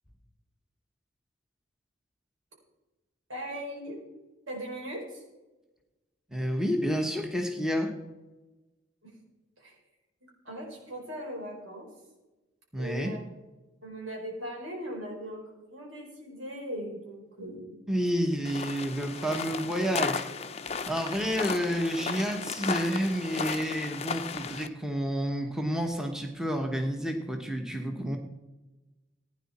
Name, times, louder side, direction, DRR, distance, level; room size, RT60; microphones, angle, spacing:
voice 1, 3.3-4.0 4.5-5.2 9.6-9.7 10.4-11.9 12.7-13.2 13.8-17.8, equal, 85° right, -1 dB, 4.8 m, -39 dB
voice 2, 6.3-8.0 12.7-13.1 17.9-20.3 20.9-28.2, equal, 5° right, 3 dB, 1.0 m, -30 dB
sound 1, 18.4-24.7, left 5 dB, 30° left, 0.5 m, -35 dB
16.0 x 9.7 x 4.2 m, 1.1 s
head